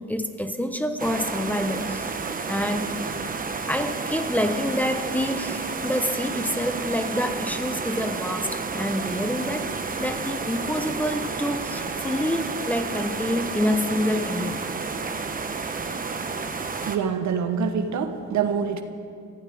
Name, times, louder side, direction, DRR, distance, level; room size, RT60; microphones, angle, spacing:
voice 1, 0.1-9.7 10.0-14.6, equal, 5° left, 7 dB, 1.0 m, -27 dB
sound 1, 1.0-17.0, right 4 dB, 30° right, 1.1 m, -31 dB
voice 2, 16.9-18.8, right 6 dB, 70° right, 7 dB, 1.2 m, -25 dB
24.0 x 15.5 x 3.6 m, 2.4 s
cardioid pair, 90°, 30 cm